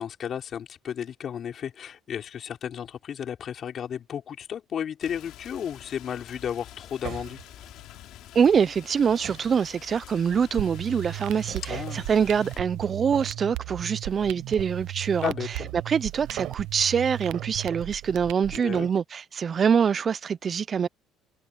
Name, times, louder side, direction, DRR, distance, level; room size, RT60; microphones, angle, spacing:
voice 1, 0.0-7.4 11.7-12.1 15.2-15.7 18.5-18.9, left 8 dB, 45° left, 5.3 m, -33 dB
Rain, 5.0-12.6, left 14 dB, 70° left, 3.7 m, -47 dB
sound 1, 5.4-5.6 7.0-8.5 8.9-10.0 11.1-12.1 12.8-13.7 14.1-14.9 15.4-16.7 17.1-18.9, right 13 dB, 60° right, 7.8 m, -43 dB
voice 2, 8.3-15.3 15.7-20.9, right 7 dB, 35° right, 0.5 m, -24 dB
sound 2, 10.6-18.6, right 20 dB, 85° right, 0.5 m, -36 dB
cardioid pair, 125°, 0 cm